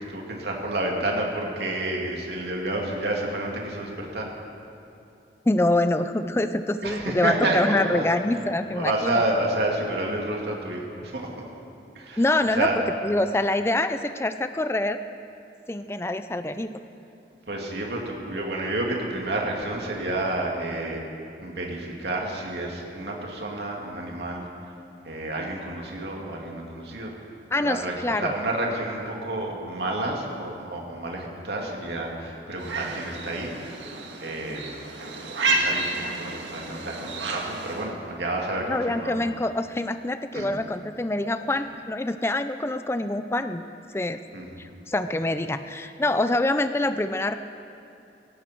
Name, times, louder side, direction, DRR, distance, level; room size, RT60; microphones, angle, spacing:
voice 1, 0.0-4.3 6.8-8.1 8.7-11.3 11.9-12.7 17.5-21.1 21.4-24.5 25.0-27.1 27.6-33.5 34.2-34.6 35.0-35.1 35.4-39.2 40.3-40.5 44.3-44.6, right 1 dB, 70° right, -1 dB, 2.6 m, -29 dB
voice 2, 5.5-9.2 12.2-12.7 13.0-15.0 15.7-16.7 27.5-28.3 38.7-43.6 43.9-44.2 44.6-47.4, left 2 dB, 15° left, 10 dB, 0.4 m, -25 dB
sound 1, 32.6-37.9, right 3 dB, 90° right, 1.9 m, -30 dB
17.0 x 17.0 x 4.5 m, 2.7 s
head